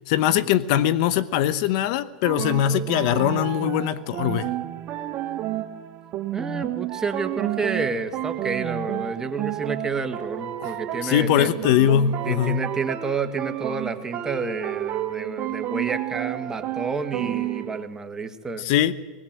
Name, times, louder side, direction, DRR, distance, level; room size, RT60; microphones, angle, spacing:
voice 1, 0.1-4.5 10.6-10.7 11.0-12.7 18.6-18.9, left 11 dB, 55° left, 0.8 m, -21 dB
sound 1, 2.2-17.8, right 13 dB, 40° right, 1.2 m, -31 dB
voice 2, 6.3-11.5 12.2-18.7, right 4 dB, 15° right, 1.5 m, -30 dB
20.5 x 19.0 x 7.5 m
supercardioid pair, 125°, 5 cm